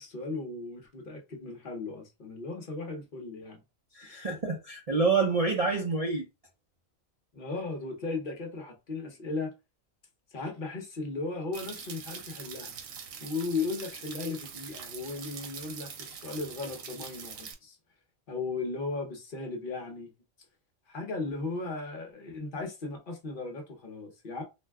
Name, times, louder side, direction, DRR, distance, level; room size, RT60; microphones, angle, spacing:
voice 1, 0.0-3.6 4.0-4.3 7.3-9.5 10.3-17.8 18.3-20.1 20.9-24.4, left 3 dB, 45° left, 0.9 m, -36 dB
voice 2, 3.9-6.2, right 4 dB, 45° right, 0.4 m, -27 dB
sound 1, 11.5-17.5, right 7 dB, 85° right, 1.1 m, -43 dB
2.6 x 2.1 x 3.4 m
omnidirectional pair, 1.4 m